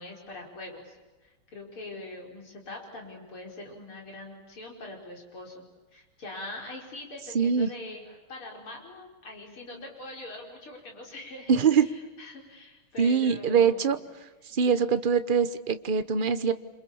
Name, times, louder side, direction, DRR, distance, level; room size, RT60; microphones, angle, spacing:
voice 1, 0.0-5.7 5.9-14.0, left 2 dB, 75° left, 1 dB, 5.9 m, -43 dB
voice 2, 7.3-7.7 11.5-11.9 13.0-14.0 14.5-16.5, right 6 dB, 35° right, 11 dB, 0.8 m, -23 dB
28.0 x 26.5 x 7.2 m, 1.2 s
omnidirectional pair, 2.4 m